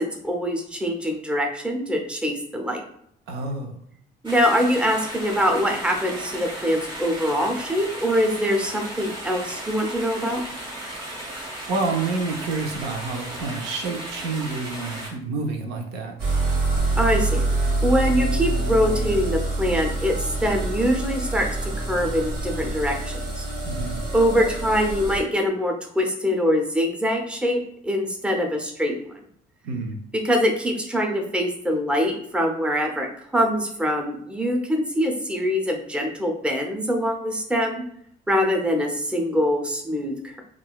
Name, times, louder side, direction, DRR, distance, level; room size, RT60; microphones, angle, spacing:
voice 1, 0.0-2.8 4.2-10.4 17.0-17.4 17.8-23.4 24.1-29.0 30.1-37.8 38.3-40.4, equal, 5° right, 2 dB, 0.5 m, -24 dB
voice 2, 3.3-3.8 11.7-16.1 23.6-24.0 29.6-30.0, right 3 dB, 85° right, 4 dB, 0.6 m, -28 dB
sound 1, 4.2-15.1, right 1 dB, 30° right, 0.9 m, -35 dB
sound 2, 16.2-25.2, right 2 dB, 65° right, 1.3 m, -26 dB
3.7 x 2.3 x 2.2 m, 0.68 s
cardioid pair, 110°, 17 cm